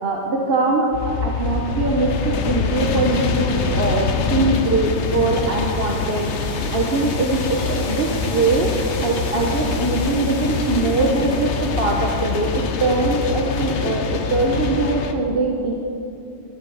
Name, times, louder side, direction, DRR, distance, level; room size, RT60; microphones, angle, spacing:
voice 1, 0.0-6.3 6.7-8.7 9.0-15.7, right 3 dB, 50° right, 0 dB, 1.2 m, -22 dB
sound 1, 0.9-15.1, left 5 dB, 60° left, 1.1 m, -25 dB
sound 2, 4.3-13.0, left 3 dB, 80° left, 1.8 m, -35 dB
11.5 x 11.0 x 7.1 m, 2.6 s
omnidirectional pair, 1.4 m